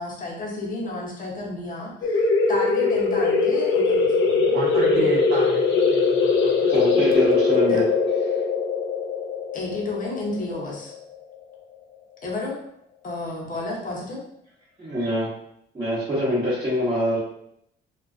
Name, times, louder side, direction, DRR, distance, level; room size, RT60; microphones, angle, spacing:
voice 1, 0.0-5.2 7.7-7.8 9.5-10.9 12.2-12.6 13.0-14.2, left 2 dB, 45° left, -2 dB, 0.8 m, -32 dB
sound 1, 2.0-11.3, left 4 dB, 70° left, 0.5 m, -21 dB
voice 2, 4.5-6.9, right 1 dB, 60° right, -5 dB, 0.6 m, -32 dB
voice 3, 6.7-7.8 14.8-15.3 15.7-17.2, equal, 20° right, -11 dB, 1.0 m, -24 dB
2.3 x 2.3 x 2.4 m, 0.75 s
cardioid pair, 90°, 20 cm